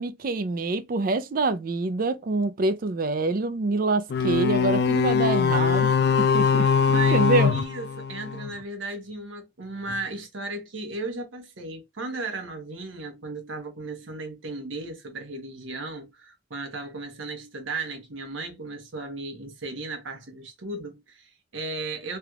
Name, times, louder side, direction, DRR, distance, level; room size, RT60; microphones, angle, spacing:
voice 1, 0.0-7.5, right 3 dB, 50° right, 0.4 m, -26 dB
sound 1, 4.1-8.6, left 6 dB, 55° left, 0.3 m, -22 dB
voice 2, 6.9-22.2, right 3 dB, 90° right, 1.1 m, -35 dB
3.4 x 3.0 x 2.3 m
head